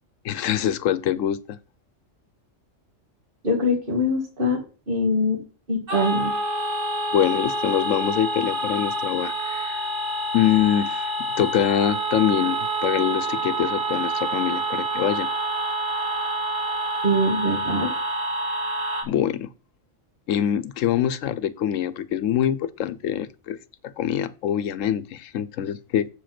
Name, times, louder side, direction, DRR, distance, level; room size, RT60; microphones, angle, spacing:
voice 1, 0.2-1.6 7.1-9.9 10.3-15.3 19.0-19.5 20.3-23.6 23.8-26.1, left 10 dB, 80° left, 1.0 m, -24 dB
voice 2, 3.4-4.6 4.9-5.4 5.7-6.3 17.0-17.9, left 1 dB, 45° right, 2.1 m, -23 dB
sound 1, 5.9-19.0, right 2 dB, 75° right, 2.4 m, -27 dB
7.7 x 5.1 x 5.9 m
omnidirectional pair, 1.3 m